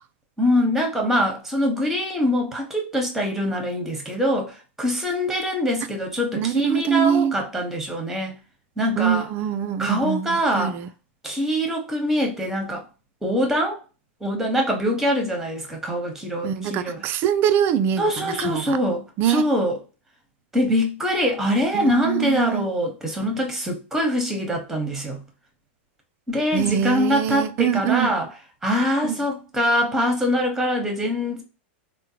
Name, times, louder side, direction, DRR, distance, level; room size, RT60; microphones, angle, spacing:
voice 1, 0.4-8.4 8.8-9.2 9.8-10.7 11.2-12.8 13.2-13.8 14.2-17.0 18.0-19.0 19.3-19.7 20.5-25.2 26.3-28.3 28.6-31.4, equal, 5° right, 0.9 m, -23 dB
voice 2, 6.3-7.4 9.0-10.9 16.4-18.8 19.2-19.4 21.7-22.7 26.5-28.1 29.0-29.2, right 9 dB, 35° right, 0.3 m, -23 dB
3.7 x 2.1 x 2.8 m
supercardioid pair, 140°, 7 cm